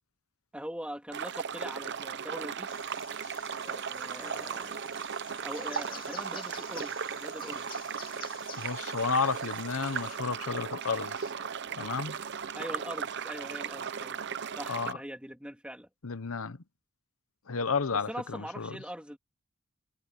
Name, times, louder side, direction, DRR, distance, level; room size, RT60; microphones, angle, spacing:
voice 1, 0.5-2.7 3.6-4.9 5.4-7.7 12.5-14.2 14.6-15.9 17.9-19.2, equal, 5° right, 2.7 m, -42 dB
sound 1, 1.1-14.9, right 7 dB, 55° right, 0.8 m, -37 dB
sound 2, 2.7-10.2, left 10 dB, 40° left, 2.4 m, -51 dB
voice 2, 8.6-11.3 11.8-12.2 14.7-15.0 16.0-16.6 17.5-18.8, left 5 dB, 80° left, 0.9 m, -32 dB
head